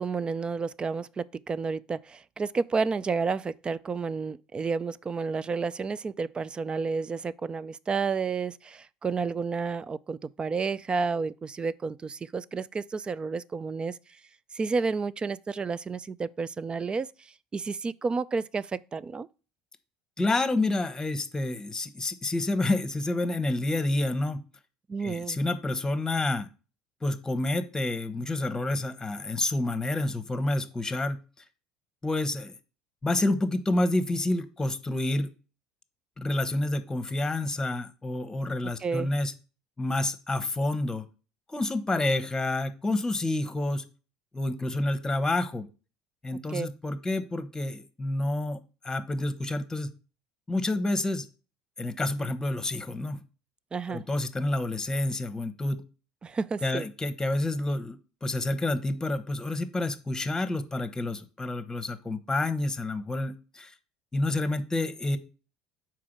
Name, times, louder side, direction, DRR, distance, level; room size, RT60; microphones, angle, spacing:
voice 1, 0.0-14.0 14.5-19.3 24.9-25.4 38.8-39.1 46.5-46.7 53.7-54.0 56.2-56.8, right 4 dB, 25° right, 0.4 m, -31 dB
voice 2, 20.2-24.4 25.0-26.5 27.0-31.2 32.0-32.5 33.0-35.3 36.2-39.3 39.8-41.0 41.5-43.8 44.3-45.7 46.2-49.9 50.5-51.2 51.8-53.2 53.9-55.8 56.6-63.7 64.1-65.2, left 2 dB, 15° left, 1.0 m, -29 dB
4.9 x 4.6 x 6.1 m
hypercardioid pair, 65°, 4 cm